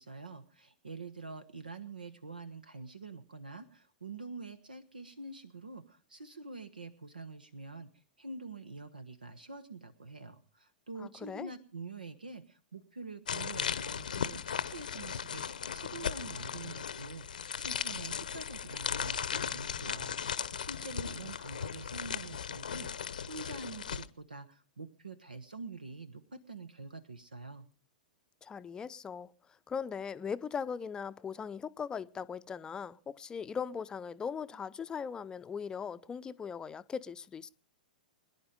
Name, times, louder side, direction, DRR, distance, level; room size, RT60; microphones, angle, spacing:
voice 1, 0.0-7.9 8.2-27.7, right 3 dB, 80° right, 1.2 m, -46 dB
voice 2, 11.0-11.5 28.4-29.3 29.7-37.5, left 6 dB, 15° left, 0.7 m, -39 dB
sound 1, 13.3-24.1, left 7 dB, 70° left, 0.9 m, -37 dB
23.0 x 10.5 x 5.2 m
figure-of-eight pair, 100°, 5 cm